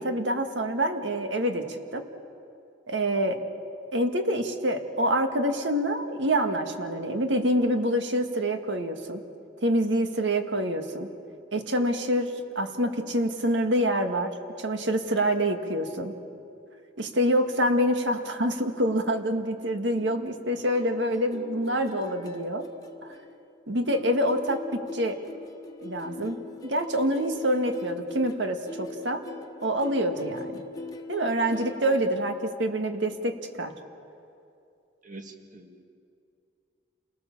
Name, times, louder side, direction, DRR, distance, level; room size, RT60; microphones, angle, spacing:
voice 1, 0.0-1.7 1.9-2.1 2.9-3.4 3.9-9.2 9.6-11.1 11.5-16.2 17.0-22.7 23.7-25.2 25.8-29.2 29.6-30.6 31.1-33.7, equal, 80° right, 6 dB, 1.8 m, -26 dB
sound 1, 20.0-23.6 23.9-32.1, left 2 dB, 20° left, 1.3 m, -42 dB
voice 2, 35.0-35.8, right 2 dB, 45° right, 5 dB, 1.9 m, -45 dB
28.5 x 18.5 x 7.2 m, 2.6 s
head